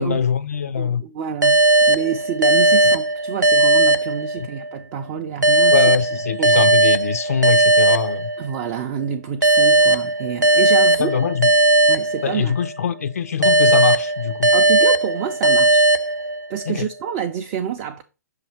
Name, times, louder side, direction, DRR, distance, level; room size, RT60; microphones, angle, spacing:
voice 1, 0.0-1.0 4.4-4.5 5.7-8.3 11.0-11.5 12.2-14.5 16.7-16.9, left 7 dB, 60° left, 0.4 m, -23 dB
voice 2, 0.8-5.8 6.4-6.6 8.4-11.2 11.9-12.6 14.5-15.9 16.5-18.0, right 8 dB, 30° right, 0.5 m, -28 dB
sound 1, 1.4-4.8 5.4-8.7 9.4-12.8 13.4-16.7, right 2 dB, 85° right, 0.5 m, -17 dB
6.4 x 2.8 x 5.6 m
figure-of-eight pair, 120°, 9 cm